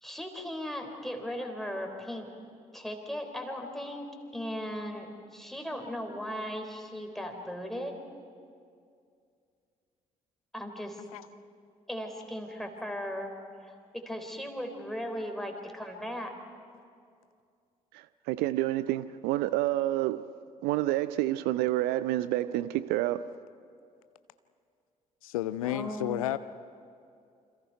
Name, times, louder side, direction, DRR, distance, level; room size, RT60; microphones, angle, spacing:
voice 1, 0.0-2.3 2.7-4.1 4.3-8.0 10.5-11.0 11.9-13.3 13.6-16.3 25.6-26.4, equal, ahead, 3.9 m, -37 dB
voice 2, 17.9-23.3, right 15 dB, 60° right, 0.5 m, -29 dB
voice 3, 25.2-26.4, left 13 dB, 75° left, 0.5 m, -31 dB
28.5 x 26.5 x 4.8 m
figure-of-eight pair, 45°, 18 cm